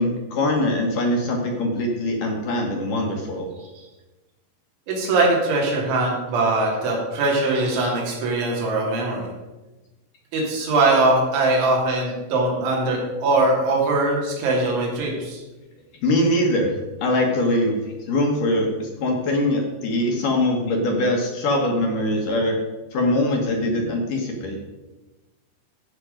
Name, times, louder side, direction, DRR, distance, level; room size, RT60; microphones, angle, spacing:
voice 1, 0.0-3.5 16.0-17.7 18.1-22.6 22.9-24.6, left 1 dB, 65° left, 2 dB, 2.2 m, -22 dB
voice 2, 4.9-9.3 10.3-15.4, right 2 dB, 80° right, -2 dB, 4.9 m, -21 dB
15.0 x 6.0 x 5.1 m, 1.1 s
omnidirectional pair, 5.3 m